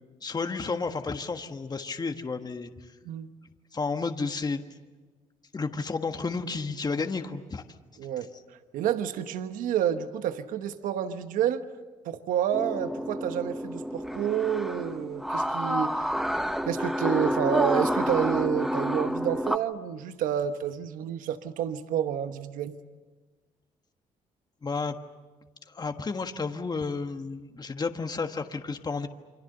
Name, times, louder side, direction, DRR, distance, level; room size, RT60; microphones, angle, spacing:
voice 1, 0.2-2.9 3.7-4.6 5.5-7.6 24.6-25.0 25.7-29.1, left 4 dB, 30° left, 7 dB, 1.5 m, -32 dB
voice 2, 8.0-8.3 8.7-11.6 12.0-16.1 16.7-22.7, right 9 dB, 80° right, 10 dB, 1.2 m, -29 dB
sound 1, 12.5-19.6, equal, ahead, 1.1 m, -29 dB
28.5 x 24.0 x 6.7 m, 1.4 s
cardioid pair, 75°, 14 cm